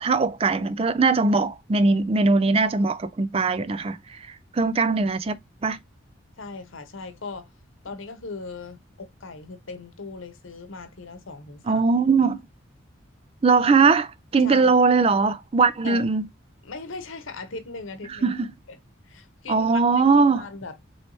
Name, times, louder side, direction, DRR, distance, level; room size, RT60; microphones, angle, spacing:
voice 1, 0.0-4.2 4.5-5.4 5.6-5.8 11.7-12.4 13.4-16.2 18.2-18.5 19.5-20.4, right 4 dB, 30° right, 0.3 m, -20 dB
voice 2, 6.4-7.5 7.8-12.3 14.4-14.8 15.8-16.1 16.6-18.4 18.7-18.8 19.1-20.8, left 3 dB, 75° left, 0.9 m, -39 dB
4.1 x 3.2 x 3.0 m
head